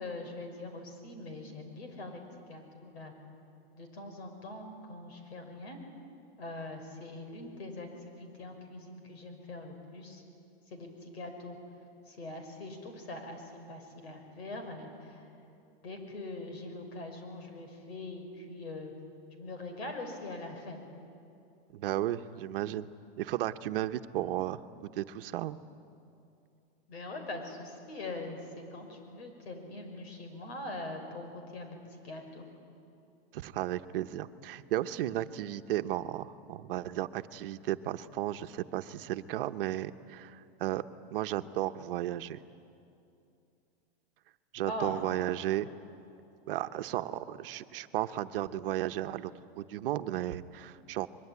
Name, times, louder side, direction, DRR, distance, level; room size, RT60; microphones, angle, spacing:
voice 1, 0.0-2.2 2.5-3.1 3.8-5.8 6.4-10.2 10.7-11.6 12.1-13.4 13.7-15.3 15.8-18.9 19.4-20.8 26.9-32.5 44.7-45.0, left 2 dB, 90° left, 5 dB, 5.8 m, -42 dB
voice 2, 21.7-22.9 23.2-24.6 25.0-25.6 33.3-40.8 41.1-42.4 44.5-45.7 46.5-51.1, right 13 dB, 65° right, 10 dB, 1.0 m, -34 dB
23.5 x 22.0 x 9.6 m, 2.6 s
supercardioid pair, 165°, 30 cm